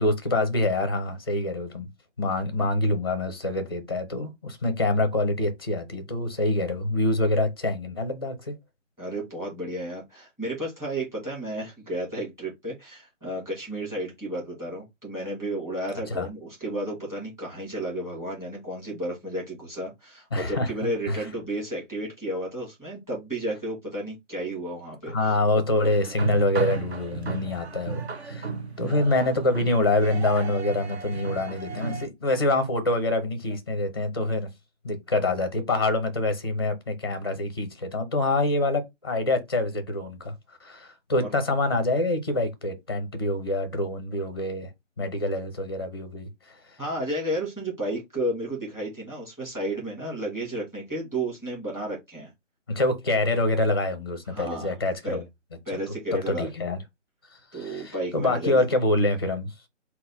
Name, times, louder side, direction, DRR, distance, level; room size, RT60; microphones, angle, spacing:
voice 1, 0.0-1.9 2.2-8.5 16.1-16.3 20.3-21.2 25.1-28.5 28.8-34.5 34.8-40.3 40.6-44.7 45.0-46.6 52.7-55.2 56.1-56.8 57.6-59.5, left 2 dB, 20° left, 0.5 m, -26 dB
voice 2, 9.0-25.3 46.8-52.3 54.3-54.7 55.0-55.2 55.6-56.5 57.5-58.6, right 1 dB, 10° right, 1.6 m, -32 dB
sound 1, 25.8-32.1, right 4 dB, 60° right, 0.8 m, -34 dB
3.9 x 2.1 x 4.0 m
figure-of-eight pair, 145°, 37 cm